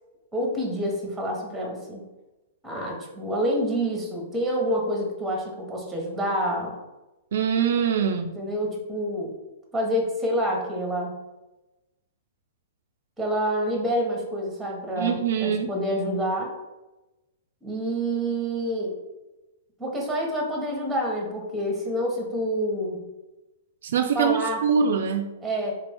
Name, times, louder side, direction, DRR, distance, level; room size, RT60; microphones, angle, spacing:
voice 1, 0.3-2.0 2.6-6.8 8.3-9.3 9.7-11.2 13.2-16.5 17.6-19.0 19.8-23.0 24.1-24.6 25.4-25.7, equal, 10° right, 0 dB, 0.9 m, -27 dB
voice 2, 7.3-8.4 15.0-15.7 23.8-25.3, right 7 dB, 70° right, 6 dB, 0.3 m, -23 dB
3.7 x 2.5 x 3.4 m, 1.0 s
hypercardioid pair, 135°, 0 cm